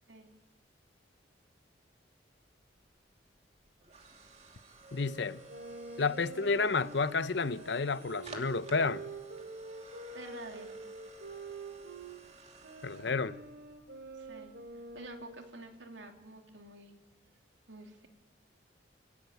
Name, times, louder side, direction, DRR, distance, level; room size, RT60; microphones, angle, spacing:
sound 1, 2.4-15.4, right 2 dB, 35° right, 2.8 m, -55 dB
voice 1, 4.9-5.4 6.0-9.0 12.8-13.4, left 4 dB, 70° left, 0.8 m, -31 dB
sound 2, 5.5-12.2 12.6-15.6, right 3 dB, 65° right, 3.0 m, -46 dB
voice 2, 10.1-10.8 14.1-14.5 14.9-16.9 17.7-18.1, right 2 dB, 80° right, 2.9 m, -49 dB
29.5 x 16.0 x 9.4 m
head